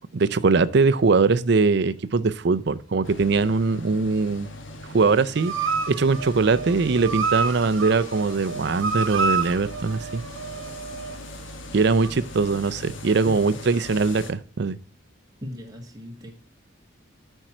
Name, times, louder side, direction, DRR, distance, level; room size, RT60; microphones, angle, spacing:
voice 1, 0.1-4.5 4.9-5.5 5.9-10.2 11.7-14.8, right 4 dB, 55° right, 0.5 m, -21 dB
sound 1, 3.0-14.3, left 1 dB, 70° left, 1.2 m, -40 dB
sound 2, 5.4-11.2 12.0-12.1, right 5 dB, 75° right, 0.9 m, -29 dB
voice 2, 13.3-13.6 15.4-16.3, left 1 dB, 20° right, 1.5 m, -38 dB
9.1 x 4.4 x 6.0 m
head